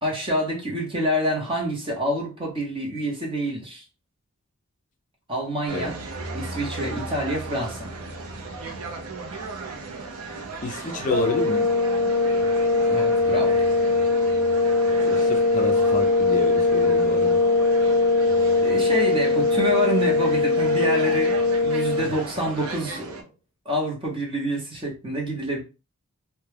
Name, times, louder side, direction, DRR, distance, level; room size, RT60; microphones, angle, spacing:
voice 1, 0.0-3.8 5.3-6.0 6.3-7.9 12.9-13.6 18.6-21.3 21.6-23.3 23.7-25.6, equal, 25° right, 0.8 m, -27 dB
sound 1, 5.7-23.2, right 3 dB, 75° right, 0.6 m, -37 dB
voice 2, 10.6-11.7 15.0-17.4 22.0-22.1, left 3 dB, 35° left, 0.4 m, -29 dB
sound 2, 11.1-22.1, left 3 dB, 10° left, 0.9 m, -21 dB
2.2 x 2.2 x 3.2 m
head